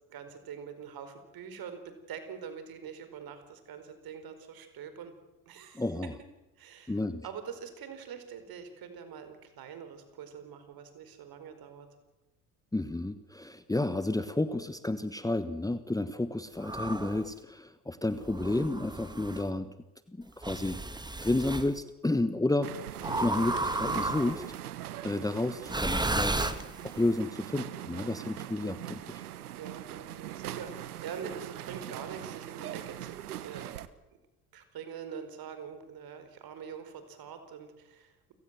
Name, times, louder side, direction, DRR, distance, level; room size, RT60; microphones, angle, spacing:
voice 1, 0.1-5.1 5.4-5.8 6.6-6.9 7.2-11.9 29.6-33.7 34.5-38.3, right 7 dB, 50° right, 9 dB, 5.0 m, -44 dB
voice 2, 5.7-6.1 6.9-7.2 12.7-19.7 20.1-20.8 21.2-22.7 23.2-24.4 25.0-26.4 26.8-29.2, left 2 dB, 10° left, 12 dB, 1.3 m, -31 dB
sound 1, 16.6-17.3 18.2-19.4 20.4-21.7 23.0-24.5 25.6-27.1, right 2 dB, 10° right, 2.0 m, -33 dB
sound 2, 22.6-33.9, right 12 dB, 80° right, 1.2 m, -41 dB
29.5 x 17.0 x 7.7 m, 1.0 s
hypercardioid pair, 60°, 45 cm